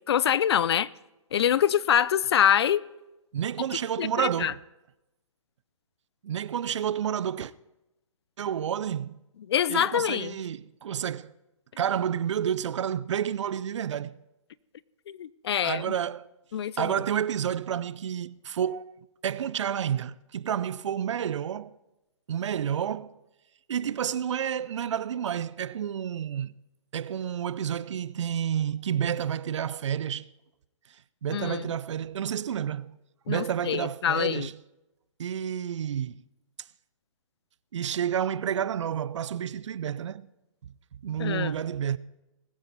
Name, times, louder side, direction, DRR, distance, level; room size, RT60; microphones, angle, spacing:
voice 1, 0.1-0.9 1.3-2.8 4.0-4.5 9.5-10.4 15.1-15.8 16.5-16.9 31.3-31.7 33.3-34.5 41.2-41.5, left 9 dB, 50° left, 0.4 m, -25 dB
voice 2, 3.3-4.6 6.2-7.5 8.4-9.2 9.7-11.3 11.8-14.2 15.6-16.3 16.8-18.9 19.2-21.8 22.3-23.2 23.7-26.6 26.9-30.3 31.2-33.0 33.3-34.6 35.2-36.2 37.7-40.3 41.0-42.0, right 9 dB, 60° right, 0.5 m, -30 dB
20.5 x 8.8 x 4.1 m
hypercardioid pair, 145°, 17 cm